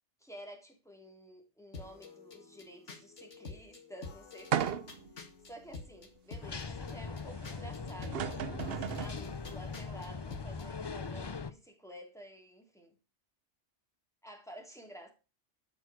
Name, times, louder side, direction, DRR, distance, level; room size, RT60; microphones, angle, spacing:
voice 1, 0.2-4.8 5.4-13.0 14.2-15.1, equal, ahead, 3.2 m, -51 dB
sound 1, 1.7-10.7, left 4 dB, 85° left, 2.3 m, -49 dB
sound 2, 4.5-5.1 5.7-5.8 7.7-7.8 8.0-9.2, right 9 dB, 60° right, 0.9 m, -34 dB
sound 3, 6.4-11.5, left 4 dB, 30° left, 0.6 m, -41 dB
12.5 x 6.3 x 6.2 m
omnidirectional pair, 1.2 m